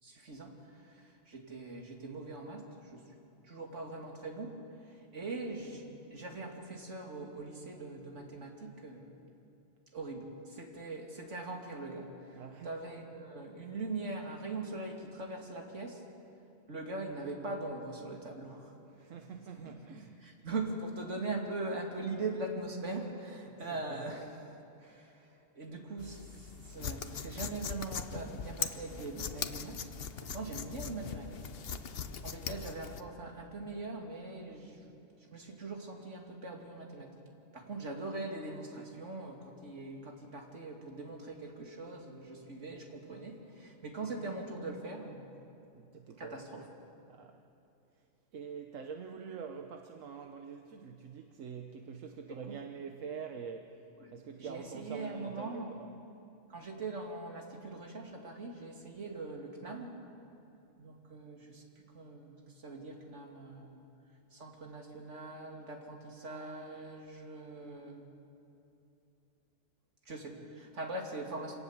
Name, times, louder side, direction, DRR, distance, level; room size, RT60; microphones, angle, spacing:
voice 1, 0.0-3.1 3.4-4.5 4.9-5.8 6.1-9.2 9.9-12.1 12.6-16.0 16.7-18.7 19.6-19.7 20.2-24.4 24.8-29.9 30.2-31.4 31.8-34.9 35.3-37.2 37.5-45.3 46.2-46.7 52.3-52.6 54.0-55.7 56.5-60.0 60.8-63.8 64.3-68.1 70.1-71.5, right 2 dB, 70° right, 1 dB, 2.8 m, -42 dB
voice 2, 12.3-12.7 19.0-20.2 23.9-24.1 45.7-46.4 47.1-47.4 48.3-53.7 54.1-55.9, right 6 dB, 85° right, 5 dB, 1.3 m, -45 dB
sound 1, 26.0-33.0, left 6 dB, 55° left, 1.0 m, -40 dB
27.0 x 18.0 x 7.3 m, 2.8 s
omnidirectional pair, 1.3 m